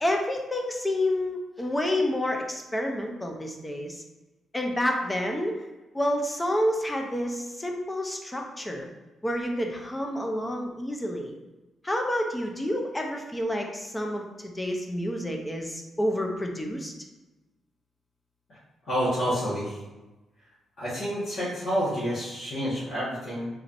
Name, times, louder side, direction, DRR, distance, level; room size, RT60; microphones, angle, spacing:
voice 1, 0.0-4.0 4.5-5.6 5.9-8.9 9.2-11.3 11.8-16.9, left 1 dB, 10° left, 2 dB, 0.5 m, -29 dB
voice 2, 18.8-19.8 20.8-23.5, equal, 55° left, -11 dB, 1.3 m, -29 dB
4.0 x 3.0 x 2.6 m, 1.1 s
cardioid pair, 135°, 0 cm